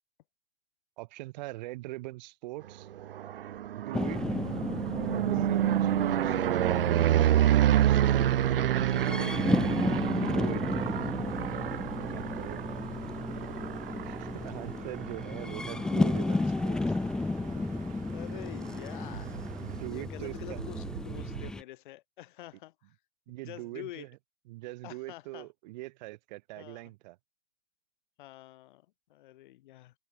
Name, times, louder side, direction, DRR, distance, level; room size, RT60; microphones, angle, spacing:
voice 1, 1.0-2.9 3.7-4.2 5.1-6.4 6.7-8.0 10.3-10.6 12.0-12.7 14.0-16.9 19.6-20.6 23.3-24.1 24.5-27.2, right 20 dB, 45° right, 1.6 m, -42 dB
sound 1, 2.9-16.9 17.3-17.8 18.0-18.1 18.4-21.5, right 11 dB, 65° right, 0.6 m, -29 dB
sound 2, 3.9-21.6, left 2 dB, ahead, 0.3 m, -33 dB
voice 2, 8.9-9.5 12.1-12.3 18.1-19.4 19.9-23.0 23.4-24.1 24.8-25.5 26.6-26.9 28.2-29.9, left 15 dB, 50° left, 7.5 m, -47 dB
Engine, 10.8-19.9, right 13 dB, 25° right, 2.2 m, -51 dB
figure-of-eight pair, 105°, 31 cm